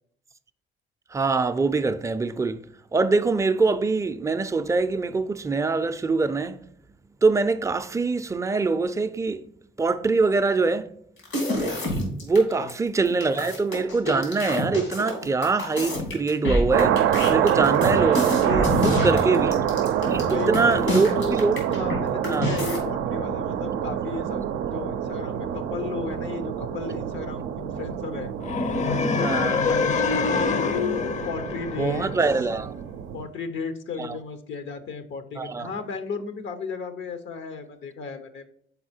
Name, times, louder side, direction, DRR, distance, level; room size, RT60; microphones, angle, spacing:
voice 1, 1.1-2.6 2.9-6.6 7.2-9.4 9.8-10.9 12.2-17.0 17.3-19.5 20.1-21.6 22.3-22.5 29.2-29.6 31.8-32.7 34.0-34.1 35.4-35.7, right 4 dB, 15° right, 0.4 m, -24 dB
sound 1, 11.2-12.4 12.7-12.8 13.1-22.0 22.2-22.8, left 1 dB, 90° left, 2.7 m, -27 dB
sound 2, 16.7-33.2, right 9 dB, 85° right, 0.4 m, -26 dB
voice 2, 18.6-19.5 20.2-21.4 21.7-24.4 24.7-28.3 28.8-30.9 31.2-32.1 33.1-38.5, left 5 dB, 75° left, 0.7 m, -34 dB
sound 3, 28.4-32.5, left 4 dB, 35° left, 0.6 m, -25 dB
5.5 x 4.3 x 4.3 m
cardioid pair, 90°, 20 cm